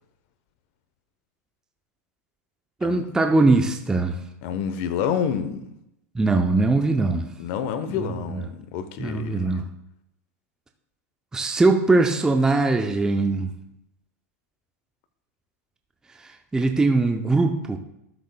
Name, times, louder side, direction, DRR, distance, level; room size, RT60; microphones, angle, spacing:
voice 1, 2.8-4.2 6.1-7.3 7.9-8.4 9.0-9.6 11.3-13.5 16.2-17.8, right 3 dB, 10° right, 5 dB, 0.5 m, -21 dB
voice 2, 4.4-5.7 7.4-9.4, left 8 dB, 50° left, 11 dB, 0.8 m, -28 dB
12.5 x 6.3 x 2.2 m, 0.83 s
hypercardioid pair, 125°, 8 cm